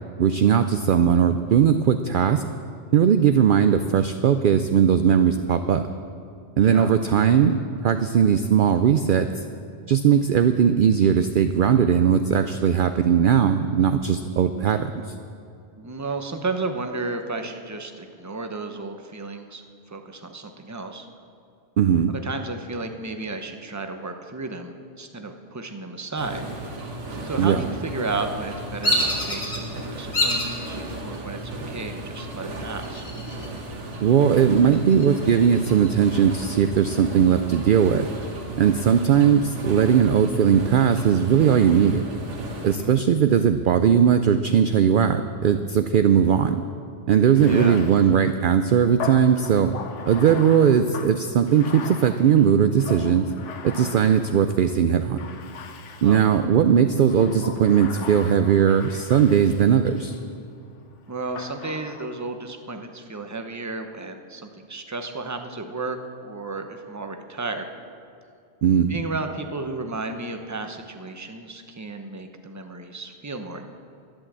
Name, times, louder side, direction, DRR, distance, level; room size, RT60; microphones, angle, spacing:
voice 1, 0.2-2.4 2.9-5.8 6.6-9.3 9.9-14.9 21.8-22.1 27.4-27.6 34.0-38.1 38.6-42.0 42.6-46.6 47.1-49.7 50.1-53.3 53.6-55.2 56.0-60.1 68.6-69.0, right 8 dB, 60° right, 9 dB, 0.6 m, -19 dB
voice 2, 6.6-6.9 15.8-19.6 19.9-21.1 22.1-26.4 27.2-33.1 42.6-43.0 47.5-47.8 56.0-56.2 61.1-66.0 66.2-67.6 68.9-73.7, right 3 dB, 15° right, 6 dB, 0.8 m, -33 dB
sound 1, 26.2-42.8, right 1 dB, 85° right, 1.7 m, -35 dB
Bird vocalization bird call bird song, 28.8-29.6 30.1-30.6 31.1-31.6 32.8-33.6 33.9-34.0 34.5-35.9, left 1 dB, 50° left, 2.2 m, -26 dB
Bathtub (filling or washing), 47.2-54.6 55.2-56.5 57.0-60.2 61.4-62.3, left 5 dB, 90° left, 1.2 m, -39 dB
11.5 x 11.0 x 7.5 m, 2.5 s
omnidirectional pair, 1.2 m